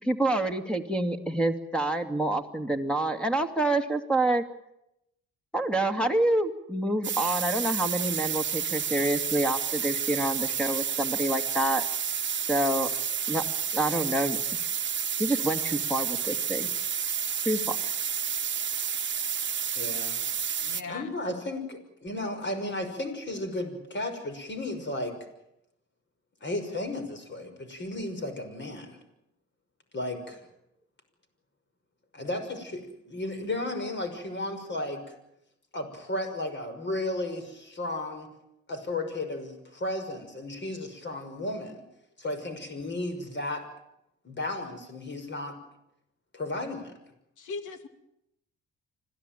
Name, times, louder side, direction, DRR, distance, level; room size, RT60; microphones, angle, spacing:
voice 1, 0.0-4.4 5.5-11.8 12.5-12.9 13.3-13.4 13.7-14.4 15.2-16.7 17.5-17.9, right 1 dB, 5° left, 6 dB, 2.4 m, -27 dB
sound 1, 7.0-20.8, right 7 dB, 40° right, 1.2 m, -30 dB
voice 2, 19.8-20.3 20.9-25.2 26.4-29.0 29.9-30.4 32.1-35.2 35.7-38.3 38.7-41.8 42.2-43.6 44.2-45.6 46.3-46.9, left 1 dB, 40° left, 7 dB, 5.9 m, -34 dB
voice 3, 20.6-21.1 47.4-47.9, left 4 dB, 80° left, 8 dB, 2.7 m, -38 dB
26.0 x 17.0 x 9.2 m, 0.84 s
cardioid pair, 90°, 30 cm